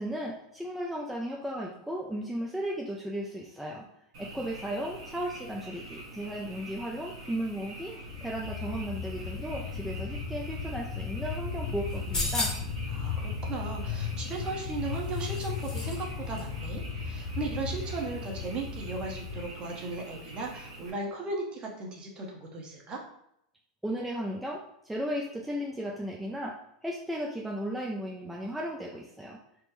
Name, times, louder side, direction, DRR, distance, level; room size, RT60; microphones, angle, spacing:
voice 1, 0.0-3.9 4.2-7.9 8.2-12.5 23.8-26.6 26.8-29.4, equal, 5° right, -2 dB, 0.4 m, -35 dB
Frog, 4.1-20.9, right 1 dB, 65° right, 1.2 m, -45 dB
sound 1, 8.1-19.5, left 6 dB, 75° left, 0.5 m, -36 dB
sound 2, 11.9-12.8 14.3-16.0 16.3-16.4, left 2 dB, 20° left, 0.9 m, -35 dB
voice 2, 12.9-23.0, right 3 dB, 30° right, 0 dB, 0.8 m, -37 dB
3.4 x 2.0 x 3.1 m, 0.77 s
hypercardioid pair, 115°, 3 cm